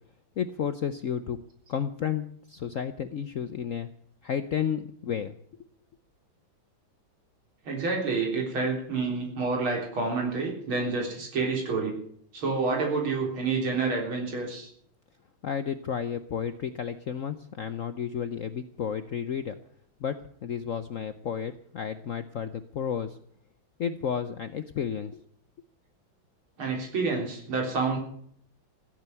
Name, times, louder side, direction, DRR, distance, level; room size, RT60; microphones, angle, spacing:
voice 1, 0.4-1.4 1.7-3.9 4.2-5.3 15.4-19.6 20.0-20.1 20.4-23.2 23.8-25.2, left 8 dB, 65° left, 11 dB, 0.8 m, -32 dB
voice 2, 7.7-12.0 12.3-14.7 26.6-28.0, right 4 dB, 85° right, 1 dB, 4.6 m, -28 dB
15.5 x 9.0 x 9.1 m, 0.64 s
omnidirectional pair, 2.2 m